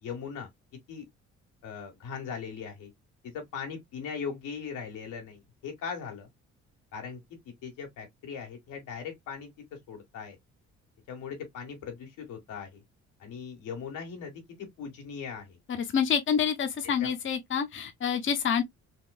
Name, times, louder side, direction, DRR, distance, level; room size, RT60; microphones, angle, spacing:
voice 1, 0.0-0.5 0.9-1.1 1.6-2.9 3.3-6.3 6.9-9.5 9.9-10.4 11.1-12.8 13.2-15.6 17.0-17.1, left 6 dB, 90° left, 1.8 m, -39 dB
voice 2, 15.7-18.6, left 7 dB, 40° left, 0.8 m, -27 dB
4.1 x 2.6 x 2.3 m
cardioid pair, 90°, 30 cm